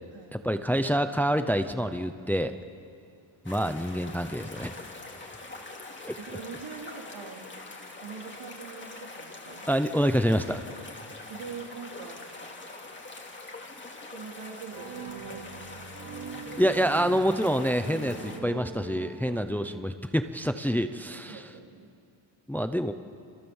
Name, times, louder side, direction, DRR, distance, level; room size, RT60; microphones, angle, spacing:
voice 1, 0.3-2.5 3.4-4.7 6.1-6.2 9.7-10.6 16.6-21.5 22.5-22.9, equal, 5° left, 9 dB, 0.6 m, -27 dB
sound 1, 3.4-18.4, left 2 dB, 25° left, 2.5 m, -44 dB
voice 2, 6.2-7.5 8.0-9.7 11.3-12.2 14.1-15.9 19.3-19.6 21.1-21.9, right 5 dB, 80° right, 0 dB, 3.9 m, -44 dB
sound 2, 14.7-19.7, right 5 dB, 45° right, 3.3 m, -42 dB
29.0 x 26.5 x 7.2 m, 2.4 s
wide cardioid pair, 180°, 47 cm